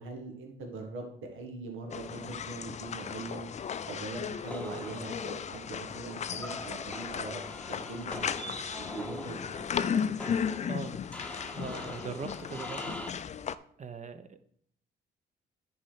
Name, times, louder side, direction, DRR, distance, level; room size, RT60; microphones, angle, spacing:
voice 1, 0.0-3.5 3.8-7.4 7.8-8.3 8.8-10.0, right 2 dB, 80° right, 2 dB, 1.7 m, -41 dB
sound 1, 1.9-13.6, left 7 dB, 35° left, 0.4 m, -36 dB
sound 2, 4.5-13.1, left 1 dB, 5° left, 0.9 m, -43 dB
voice 2, 11.5-13.0 13.8-14.4, right 5 dB, 35° right, 9 dB, 0.9 m, -40 dB
9.9 x 4.3 x 5.7 m, 0.64 s
cardioid pair, 90°, 20 cm